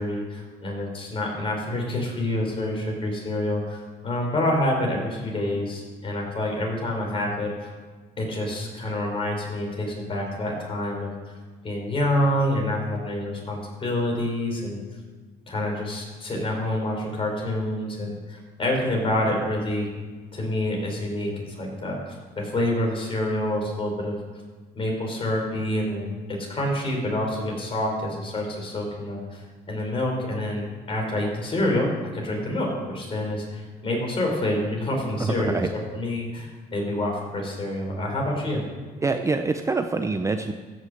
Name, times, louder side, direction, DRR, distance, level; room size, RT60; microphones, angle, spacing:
voice 1, 0.0-7.5 8.2-11.4 11.6-14.8 15.5-19.9 20.3-24.2 24.7-29.4 29.7-35.6 35.9-38.6, left 1 dB, 30° left, 0 dB, 4.4 m, -27 dB
voice 2, 35.2-35.7 39.0-40.5, right 3 dB, 20° right, 7 dB, 0.6 m, -25 dB
14.5 x 6.4 x 7.8 m, 1.4 s
cardioid pair, 110°, 17 cm